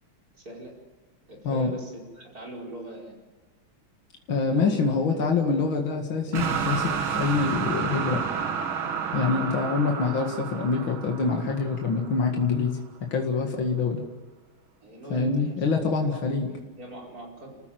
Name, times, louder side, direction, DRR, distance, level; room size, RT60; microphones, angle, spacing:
voice 1, 0.3-0.7 1.3-3.2 4.5-4.9 5.3-5.6 14.8-15.7 16.1-17.6, right 1 dB, 45° right, 0 dB, 5.5 m, -41 dB
voice 2, 4.3-8.2 9.1-14.0 15.1-16.5, left 4 dB, 75° left, 2 dB, 2.8 m, -25 dB
sound 1, 6.3-12.4, right 7 dB, 90° right, 2.2 m, -30 dB
30.0 x 15.0 x 7.8 m, 1.4 s
omnidirectional pair, 2.2 m